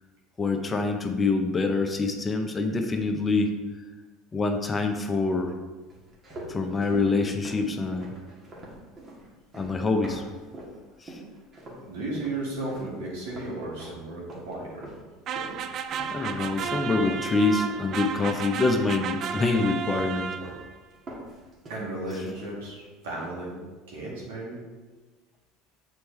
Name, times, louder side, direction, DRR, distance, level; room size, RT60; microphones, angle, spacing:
voice 1, 0.4-3.6 4.3-5.5 6.5-8.1 9.5-10.2 11.0-11.2 16.1-20.3, left 3 dB, 25° left, 5 dB, 0.7 m, -26 dB
sound 1, 5.9-10.8 11.1-11.9 12.2-18.4 18.7-19.5 19.9-20.6 20.9-22.8 23.1-23.5, right 1 dB, 35° right, 1.8 m, -44 dB
voice 2, 11.9-14.9 21.7-23.6 23.9-24.6, right 2 dB, 80° right, -3 dB, 1.9 m, -34 dB
sound 2, 15.3-20.8, right 6 dB, 50° right, 0.4 m, -33 dB
6.8 x 4.6 x 3.3 m, 1.3 s
hypercardioid pair, 85°, 0 cm